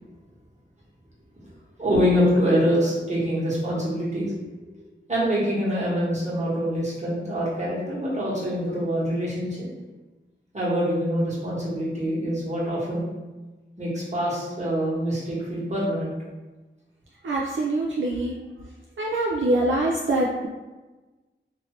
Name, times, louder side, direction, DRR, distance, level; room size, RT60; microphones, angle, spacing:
voice 1, 1.8-4.3 5.1-9.7 10.5-13.1 13.8-16.1, equal, 35° right, -8 dB, 1.3 m, -25 dB
voice 2, 17.2-18.4 19.0-20.5, right 2 dB, 70° right, -3 dB, 0.4 m, -24 dB
2.8 x 2.6 x 3.1 m, 1.2 s
wide cardioid pair, 55°, 20 cm